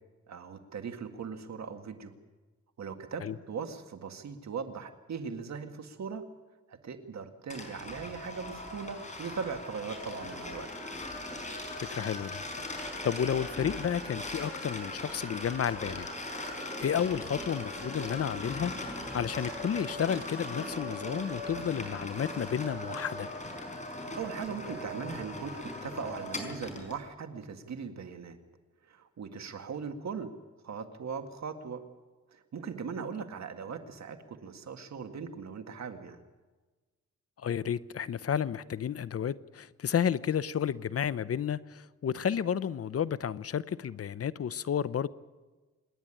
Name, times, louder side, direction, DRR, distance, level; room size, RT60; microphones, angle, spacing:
voice 1, 0.3-2.1 2.8-6.2 6.7-10.7 24.2-28.4 28.9-30.3 30.6-31.8 32.3-36.2, right 6 dB, 65° right, 2.0 m, -39 dB
sound 1, 7.5-27.0, left 1 dB, 25° left, 5.0 m, -39 dB
voice 2, 11.9-12.4 13.0-16.1 16.6-23.3 37.4-45.1, left 8 dB, 55° left, 0.7 m, -32 dB
27.0 x 10.5 x 10.0 m
cardioid pair, 85°, 29 cm